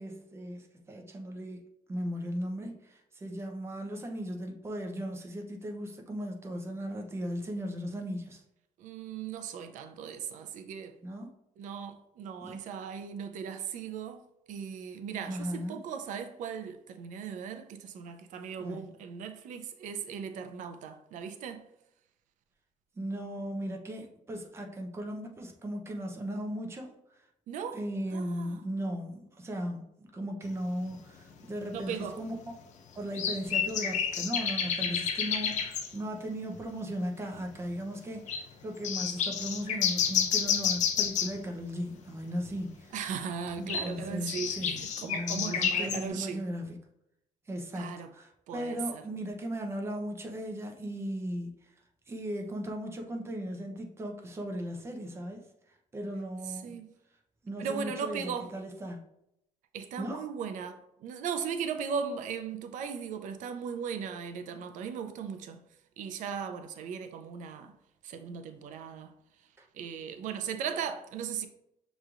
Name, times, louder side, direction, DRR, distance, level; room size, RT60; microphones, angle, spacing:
voice 1, 0.0-1.6 1.9-8.4 11.0-11.3 12.4-12.6 15.2-15.8 18.6-18.9 23.0-26.9 27.7-32.3 33.0-42.9 43.6-46.8 47.5-51.5 52.1-55.4 55.9-56.8 57.4-59.0 60.0-60.2 69.6-69.7, equal, 20° right, 0.6 m, -37 dB
voice 2, 8.8-10.9 11.6-14.2 14.5-21.7 27.5-27.8 28.1-28.6 31.7-32.2 42.9-46.4 47.7-48.1 48.5-49.0 56.5-56.9 57.6-58.5 59.7-65.6 66.0-67.7 68.0-69.1 69.7-71.5, right 7 dB, 85° right, 0.5 m, -37 dB
sound 1, 30.9-31.0 31.8-31.9 33.1-35.9 36.5-36.6 36.9-37.0 37.4-37.7 38.3-38.4 38.8-41.4 43.5-46.0, left 7 dB, 70° left, 0.6 m, -30 dB
6.4 x 3.0 x 2.4 m
cardioid pair, 145°, 13 cm